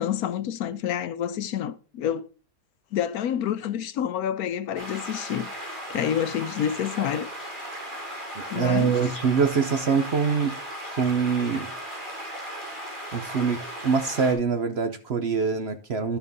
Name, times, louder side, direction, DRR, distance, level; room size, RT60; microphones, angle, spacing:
voice 1, 0.0-2.3 2.9-7.3 7.8-8.1 8.5-8.9, left 9 dB, 70° left, 1.1 m, -28 dB
sound 1, 4.8-14.3, equal, 15° right, 4.0 m, -37 dB
voice 2, 8.5-10.5 11.0-11.7 13.1-16.2, right 5 dB, 50° right, 0.8 m, -24 dB
12.0 x 4.5 x 5.3 m
omnidirectional pair, 1.7 m